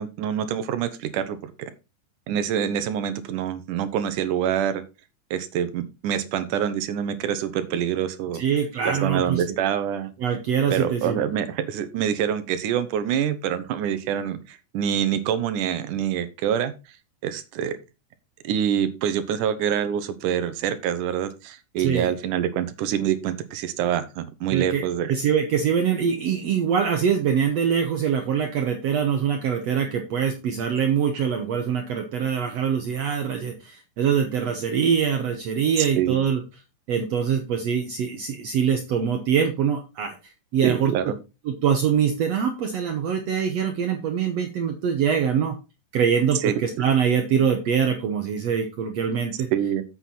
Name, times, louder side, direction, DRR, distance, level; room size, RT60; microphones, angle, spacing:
voice 1, 0.0-1.7 2.3-4.8 5.3-8.4 8.8-10.1 10.7-16.7 17.2-17.8 18.4-25.1 35.8-36.2 40.6-41.2 46.4-46.7 49.5-49.8, right 9 dB, 75° right, 12 dB, 2.3 m, -26 dB
voice 2, 8.4-9.4 10.2-11.2 21.8-22.1 24.5-24.8 25.1-36.4 36.9-40.2 40.5-40.9 41.5-45.6 45.9-49.5, right 7 dB, 60° right, 5 dB, 2.0 m, -23 dB
8.1 x 7.6 x 4.2 m, 0.28 s
omnidirectional pair, 3.7 m